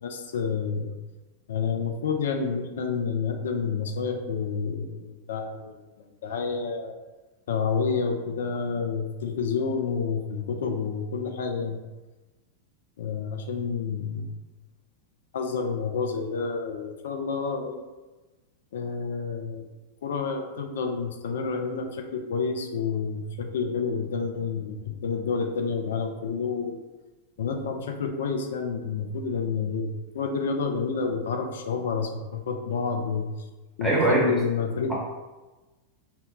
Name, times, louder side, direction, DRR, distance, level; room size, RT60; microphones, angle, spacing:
voice 1, 0.0-0.9 1.5-6.9 7.5-11.8 13.0-14.3 15.3-17.8 18.7-19.7 20.0-26.8 27.4-33.3 33.8-34.9, left 5 dB, 60° left, 4 dB, 0.3 m, -29 dB
voice 2, 33.8-34.4, right 2 dB, 5° right, -5 dB, 0.8 m, -21 dB
2.1 x 2.0 x 3.7 m, 1.2 s
figure-of-eight pair, 90°, 0 cm